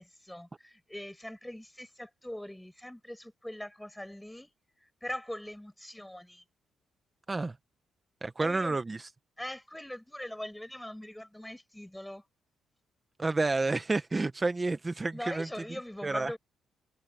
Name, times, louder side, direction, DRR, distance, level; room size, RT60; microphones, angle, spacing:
voice 1, 0.0-4.5 4.8-6.4 8.4-8.8 9.4-12.3 15.1-16.4, left 1 dB, 5° left, 6.7 m, -41 dB
voice 2, 8.2-9.0 13.2-15.5 16.0-16.3, right 3 dB, 25° right, 1.3 m, -29 dB
cardioid pair, 90°, 0 cm